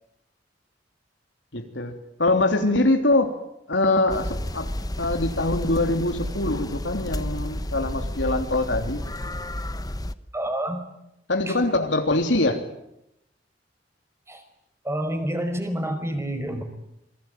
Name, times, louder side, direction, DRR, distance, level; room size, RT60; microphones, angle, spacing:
voice 1, 1.5-3.4 3.7-4.7 5.0-9.0 11.3-12.6, left 2 dB, 80° left, 4 dB, 3.3 m, -23 dB
sound 1, 4.1-10.1, left 1 dB, 20° left, 1.1 m, -31 dB
voice 2, 10.3-10.8 11.5-11.6 14.3-14.4 14.8-16.6, right 1 dB, 15° right, 7 dB, 5.2 m, -28 dB
27.5 x 21.5 x 9.3 m, 0.82 s
head